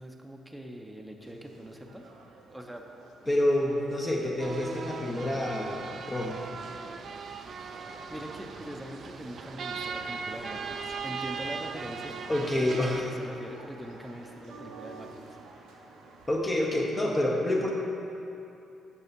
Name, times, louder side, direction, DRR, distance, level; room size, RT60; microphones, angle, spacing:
voice 1, 0.0-2.0 2.5-2.8 7.9-12.1 12.7-15.2, right 1 dB, 5° right, 2 dB, 0.8 m, -42 dB
sound 1, 1.2-16.4, right 3 dB, 90° right, 0.8 m, -51 dB
voice 2, 3.3-6.3 12.3-13.1 16.3-17.7, left 1 dB, 25° left, -1 dB, 0.9 m, -28 dB
sound 2, 4.4-13.0, right 5 dB, 55° right, 0.4 m, -39 dB
6.8 x 5.6 x 5.3 m, 2.8 s
cardioid pair, 90°, 0 cm